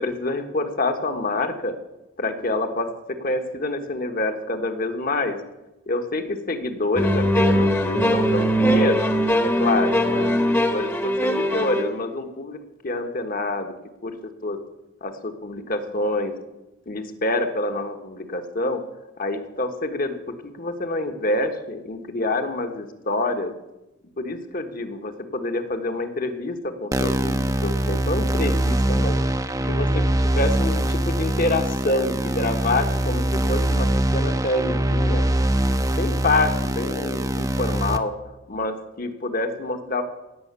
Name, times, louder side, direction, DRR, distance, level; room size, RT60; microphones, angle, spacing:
voice 1, 0.0-1.7 2.2-2.9 3.2-5.4 5.9-9.1 9.4-10.3 10.7-13.7 14.0-14.1 14.4-14.6 15.0-16.3 16.9-18.8 19.2-23.5 24.2-29.2 29.6-35.3 35.9-38.1 38.5-40.0, left 2 dB, 50° left, 7 dB, 1.4 m, -27 dB
sound 1, 7.0-11.9, equal, 10° left, 1.1 m, -21 dB
sound 2, 26.9-38.0, right 1 dB, 20° right, 0.7 m, -23 dB
17.0 x 6.4 x 8.2 m, 1.0 s
head